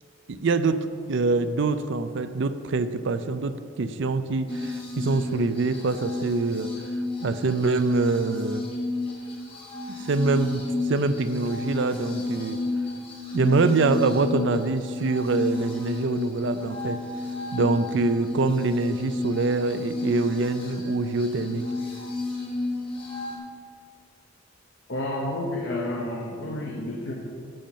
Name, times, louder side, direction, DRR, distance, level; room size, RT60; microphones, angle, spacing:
voice 1, 0.3-6.9 7.2-8.7 9.9-12.6 13.3-17.0 17.5-21.6, right 3 dB, 60° right, 11 dB, 0.5 m, -25 dB
sound 1, 4.5-23.4, left 2 dB, 25° left, 1.6 m, -31 dB
voice 2, 24.9-27.1, left 1 dB, 60° left, -2 dB, 1.0 m, -30 dB
7.8 x 7.1 x 6.3 m, 2.2 s
head